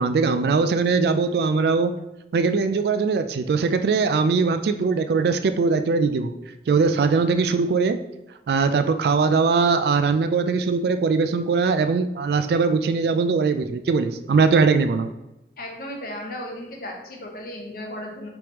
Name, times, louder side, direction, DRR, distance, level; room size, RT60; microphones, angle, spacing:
voice 1, 0.0-2.0 2.3-6.3 6.7-8.0 8.5-15.1, right 4 dB, 60° right, 9 dB, 0.3 m, -21 dB
voice 2, 15.6-18.3, left 1 dB, 50° left, 1 dB, 0.9 m, -35 dB
4.7 x 3.4 x 2.9 m, 0.93 s
head